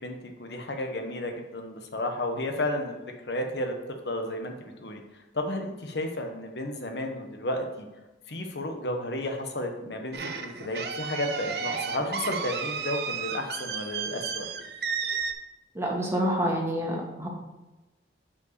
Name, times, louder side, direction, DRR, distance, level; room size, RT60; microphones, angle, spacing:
voice 1, 0.0-3.0 3.2-5.0 5.3-7.9 8.3-14.5, left 1 dB, 75° left, 4 dB, 1.0 m, -32 dB
sound 1, 10.1-15.3, right 6 dB, 65° right, 0.6 m, -33 dB
voice 2, 15.7-17.3, equal, 15° right, -1 dB, 1.4 m, -27 dB
5.7 x 4.8 x 6.5 m, 1.1 s
head